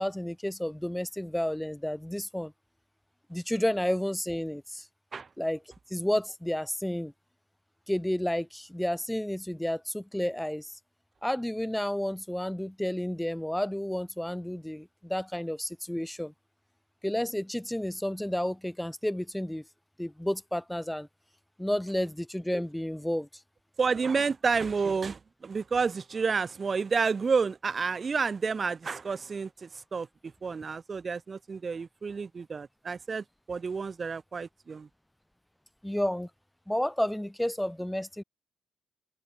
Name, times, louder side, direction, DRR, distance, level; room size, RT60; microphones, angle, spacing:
voice 1, 0.0-2.5 3.3-4.9 5.4-5.6 5.9-7.1 7.9-10.7 11.2-16.3 17.0-19.6 20.0-21.1 21.6-23.3 35.8-36.3 36.7-38.2, left 1 dB, 5° left, 3.5 m, -31 dB
voice 2, 23.8-34.9, right 5 dB, 40° right, 4.4 m, -30 dB
cardioid pair, 70°, 0 cm